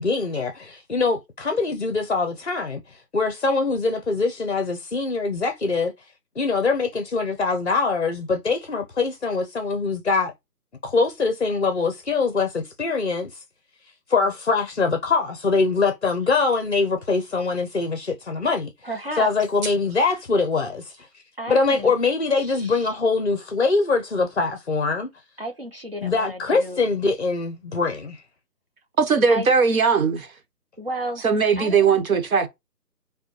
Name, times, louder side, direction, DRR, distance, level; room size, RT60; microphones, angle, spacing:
voice 1, 0.0-5.9 6.4-10.3 10.8-13.4 14.1-18.7 19.2-21.0 21.5-25.1 26.0-28.2, left 4 dB, 45° left, 0.5 m, -23 dB
voice 2, 18.8-19.3 21.4-21.9 22.4-22.9 25.4-26.9 29.3-29.5 30.8-31.3 31.6-32.0, right 1 dB, 40° right, 0.5 m, -33 dB
voice 3, 29.0-30.3 31.2-32.5, right 5 dB, 60° right, 1.1 m, -19 dB
4.9 x 2.2 x 3.0 m
figure-of-eight pair, 170°, 48 cm